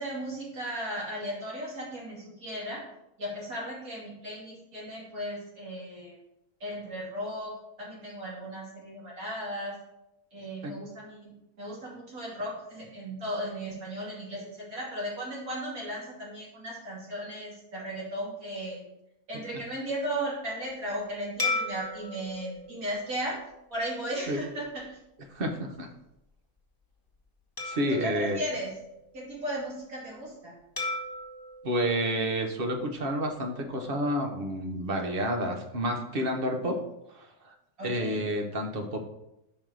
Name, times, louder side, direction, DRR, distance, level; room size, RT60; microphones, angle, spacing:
voice 1, 0.0-2.8 3.2-6.2 6.6-9.8 10.3-18.8 19.3-23.4 23.7-25.0 27.9-28.8 29.1-30.5 37.8-38.2, equal, 65° right, -5 dB, 3.1 m, -36 dB
sound 1, 21.4-24.1 24.7-24.8 27.6-29.4 30.8-33.1, left 3 dB, 15° left, 1.2 m, -37 dB
voice 2, 25.3-25.9 27.6-28.4 31.6-36.8 37.1-37.5 37.8-39.0, equal, 40° right, 4 dB, 1.0 m, -30 dB
5.6 x 5.3 x 6.2 m, 0.86 s
omnidirectional pair, 1.6 m